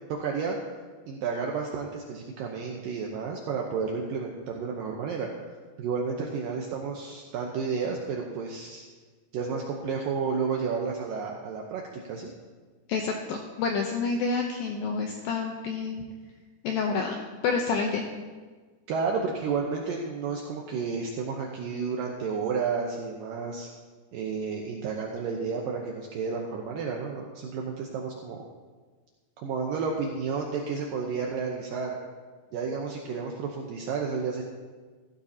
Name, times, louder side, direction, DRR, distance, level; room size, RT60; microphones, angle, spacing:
voice 1, 0.1-0.6 1.1-5.3 5.8-8.8 9.3-12.3 18.9-23.7 24.1-28.4 29.4-32.0 32.5-34.4, right 5 dB, 80° right, 0 dB, 2.0 m, -31 dB
voice 2, 12.9-16.1 16.6-17.2 17.4-18.1, left 4 dB, 85° left, 2 dB, 2.1 m, -28 dB
16.0 x 14.5 x 2.8 m, 1.4 s
omnidirectional pair, 5.2 m